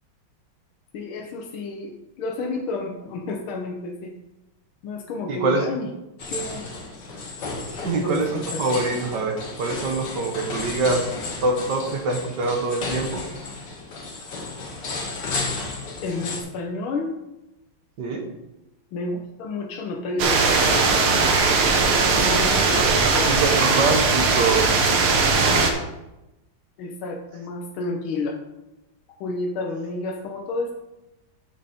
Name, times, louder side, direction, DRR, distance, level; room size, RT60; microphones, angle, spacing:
voice 1, 0.9-4.1 4.8-5.9 6.3-6.7 7.8-8.6 16.0-17.2 18.9-20.9 21.7-23.3 23.6-23.8 25.4-25.8 26.8-28.4 29.2-30.7, left 3 dB, 80° left, 1 dB, 1.7 m, -31 dB
voice 2, 5.2-5.6 7.8-11.1 11.4-13.2 18.0-18.2 22.2-22.8 23.2-24.7, right 3 dB, 60° right, 3 dB, 1.7 m, -24 dB
sound 1, 6.2-16.4, left 3 dB, 55° left, 2.0 m, -33 dB
sound 2, 20.2-25.7, right 4 dB, 85° right, 2.1 m, -19 dB
8.4 x 6.9 x 4.3 m, 0.95 s
omnidirectional pair, 2.3 m